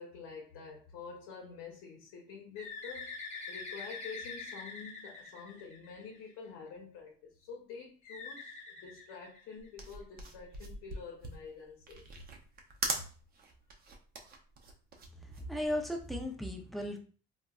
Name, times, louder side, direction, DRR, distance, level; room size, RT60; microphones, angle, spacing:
voice 1, 0.0-3.1 3.5-12.2 12.9-13.0, left 5 dB, 80° left, 0.7 m, -48 dB
Bird, 2.6-6.3 8.0-9.8, left 4 dB, 35° left, 0.8 m, -45 dB
sound 1, 9.6-16.3, right 3 dB, 45° right, 0.6 m, -41 dB
voice 2, 15.3-17.0, left 1 dB, ahead, 0.5 m, -36 dB
3.9 x 2.1 x 2.3 m
cardioid pair, 125°, 21 cm